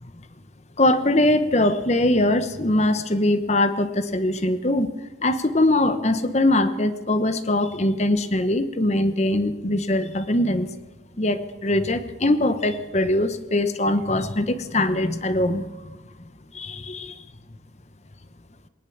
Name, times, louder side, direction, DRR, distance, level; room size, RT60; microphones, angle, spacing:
voice 1, 0.8-4.9 5.2-10.7 11.2-16.0 16.5-17.1, left 1 dB, 35° left, 11 dB, 1.1 m, -22 dB
19.0 x 19.0 x 7.2 m, 1.2 s
head